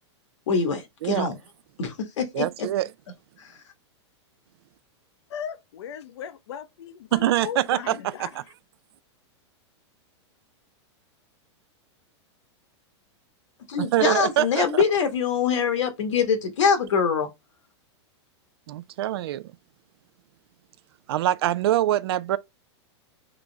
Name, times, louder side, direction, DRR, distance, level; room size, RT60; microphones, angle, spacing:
voice 1, 0.5-1.4 1.8-2.7 13.7-17.3, left 6 dB, 85° left, 1.3 m, -24 dB
voice 2, 2.3-2.9 7.1-8.4 13.8-14.8 18.7-19.4 21.1-22.4, right 13 dB, 55° right, 0.4 m, -24 dB
voice 3, 5.3-8.3, left 9 dB, 65° left, 0.6 m, -37 dB
3.8 x 3.1 x 3.3 m
supercardioid pair, 170°, 15 cm